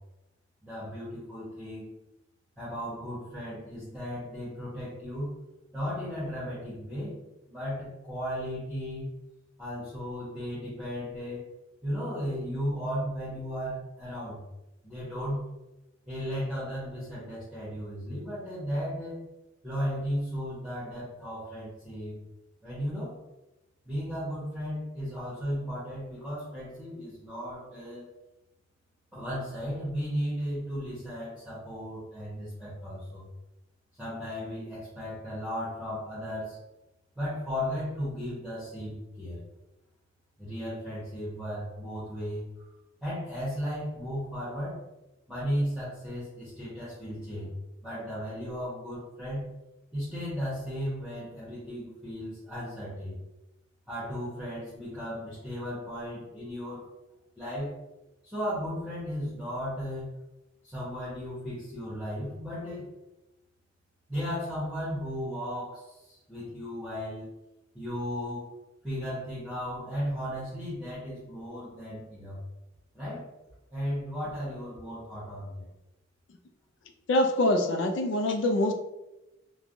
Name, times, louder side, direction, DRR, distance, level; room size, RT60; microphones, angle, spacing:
voice 1, 0.6-1.9 2.6-5.4 5.7-7.2 7.5-9.1 9.6-11.5 11.8-14.4 14.8-15.5 16.1-19.2 19.6-22.2 22.6-23.1 23.8-28.1 29.1-33.3 34.0-36.6 37.2-39.4 40.4-42.5 43.0-44.8 45.3-47.5 47.8-49.5 49.9-53.2 53.9-56.9 57.4-57.8 58.2-60.1 60.6-62.9 64.1-67.3 67.7-68.5 68.8-72.4 72.9-73.3 73.7-75.7, equal, 5° right, -11 dB, 0.9 m, -35 dB
voice 2, 77.1-78.7, left 1 dB, 70° left, 5 dB, 0.4 m, -24 dB
3.1 x 2.2 x 2.5 m, 0.98 s
head